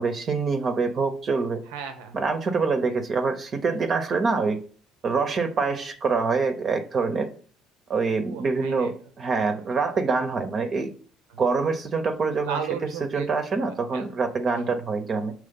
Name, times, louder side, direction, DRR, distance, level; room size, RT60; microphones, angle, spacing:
voice 1, 0.0-1.6 2.1-4.6 5.0-7.3 7.9-10.9 11.4-12.6 13.1-15.3, right 4 dB, 40° right, 5 dB, 0.8 m, -25 dB
voice 2, 1.6-2.2 8.1-8.9 9.6-9.7 11.3-11.4 12.4-13.3 13.9-14.1, right 7 dB, 90° right, 7 dB, 0.9 m, -34 dB
6.6 x 3.1 x 5.4 m, 0.43 s
supercardioid pair, 90°, 0 cm